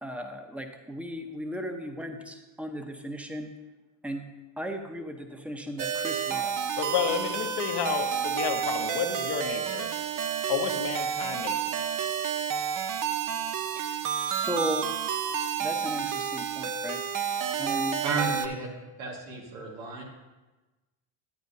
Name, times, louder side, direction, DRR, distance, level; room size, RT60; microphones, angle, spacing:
voice 1, 0.0-3.5 4.0-4.3 4.6-6.5 13.7-14.0 14.2-14.9 15.6-17.0 17.6-18.0, equal, 5° right, 5 dB, 0.9 m, -36 dB
sound 1, 5.8-18.5, right 8 dB, 45° right, 0.7 m, -30 dB
voice 2, 6.8-9.9 10.5-11.7, left 7 dB, 60° left, 6 dB, 1.1 m, -31 dB
voice 3, 18.0-18.7 19.0-20.0, right 4 dB, 90° right, -1 dB, 2.1 m, -32 dB
10.5 x 9.1 x 2.7 m, 1.2 s
supercardioid pair, 80°, 45 cm